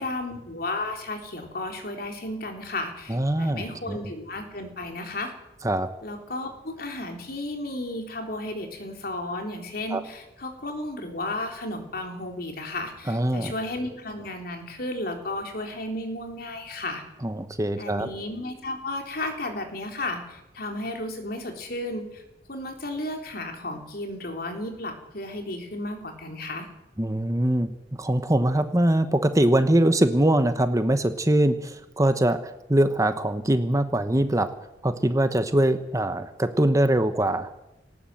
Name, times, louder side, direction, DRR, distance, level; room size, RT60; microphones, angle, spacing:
voice 1, 0.0-5.3 6.0-17.0 17.8-22.2 22.5-26.7, left 2 dB, 55° left, 4 dB, 3.8 m, -33 dB
voice 2, 3.1-4.0 5.6-5.9 9.9-10.0 13.1-13.5 17.2-18.1 27.0-27.7 28.0-34.5 34.8-37.7, right 1 dB, 20° right, 9 dB, 1.1 m, -23 dB
19.0 x 17.0 x 7.9 m, 0.93 s
head